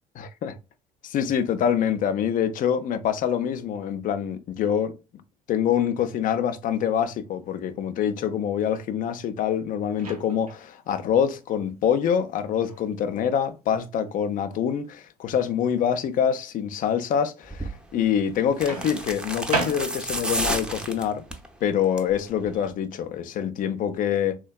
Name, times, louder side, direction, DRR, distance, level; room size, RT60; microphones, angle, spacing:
voice 1, 0.2-0.5 1.0-4.9 5.5-21.2 21.6-24.4, left 8 dB, 45° left, 0.5 m, -25 dB
Microwave oven, 10.0-10.7 12.7-12.9 18.7-20.3, right 3 dB, 90° right, 0.7 m, -32 dB
sound 1, 17.5-17.8 18.5-21.5 21.8-22.2 22.5-22.6, right 1 dB, 5° right, 0.5 m, -31 dB
3.3 x 2.2 x 2.2 m
figure-of-eight pair, 55°, 19 cm